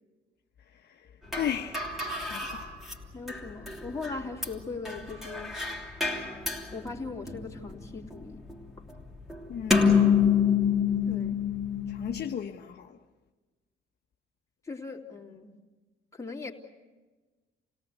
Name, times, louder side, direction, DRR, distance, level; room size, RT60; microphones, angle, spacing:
voice 1, 1.3-1.9 2.2-2.8 9.5-10.0 11.9-13.0, left 9 dB, 55° left, 1.0 m, -35 dB
sound 1, 1.3-12.2, left 6 dB, ahead, 3.1 m, -28 dB
voice 2, 3.1-5.5 6.7-8.5 11.0-11.4 14.7-15.5 16.1-16.5, left 4 dB, 15° left, 3.2 m, -39 dB
29.0 x 18.0 x 8.2 m
cardioid pair, 90°, 20 cm